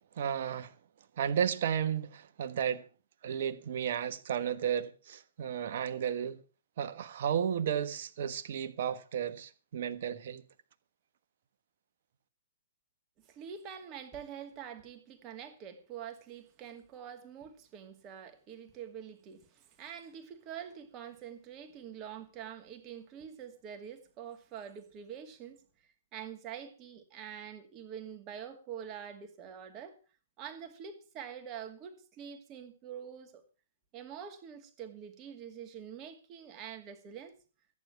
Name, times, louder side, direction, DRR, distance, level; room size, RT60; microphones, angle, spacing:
voice 1, 0.2-0.7 1.2-2.8 3.2-6.4 6.8-10.4, right 8 dB, 55° right, 1.3 m, -33 dB
voice 2, 13.2-30.0 30.4-33.4 33.9-37.4, right 8 dB, 30° right, 2.4 m, -46 dB
14.0 x 9.7 x 6.0 m
figure-of-eight pair, 120°, 0 cm